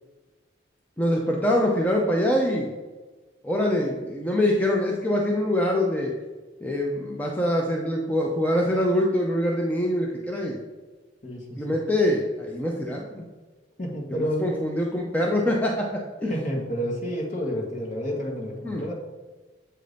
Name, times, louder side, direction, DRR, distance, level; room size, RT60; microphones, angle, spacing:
voice 1, 1.0-2.7 3.4-6.1 6.6-10.6 11.6-13.2 14.4-15.9 16.2-16.3 18.6-18.8, left 1 dB, 10° left, -1 dB, 0.5 m, -24 dB
voice 2, 11.2-11.7 13.8-14.5 16.3-18.9, equal, 45° left, -1 dB, 1.2 m, -30 dB
7.7 x 2.7 x 5.0 m, 1.3 s
head